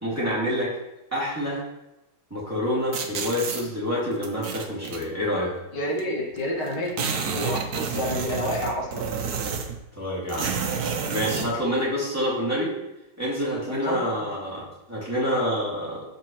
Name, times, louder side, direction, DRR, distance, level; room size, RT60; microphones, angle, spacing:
voice 1, 0.0-0.7 1.1-1.6 2.3-5.5 10.0-10.5 11.1-12.7 13.2-16.0, equal, 5° right, -7 dB, 2.4 m, -27 dB
sound 1, 2.9-3.6 4.2-5.0 6.0-6.1 6.3-6.4 6.7-9.8 10.3-11.5, right 6 dB, 55° right, 1.2 m, -29 dB
voice 2, 5.7-9.0 13.7-14.3, left 1 dB, 90° left, -3 dB, 2.8 m, -29 dB
13.0 x 4.8 x 3.1 m, 0.94 s
omnidirectional pair, 2.2 m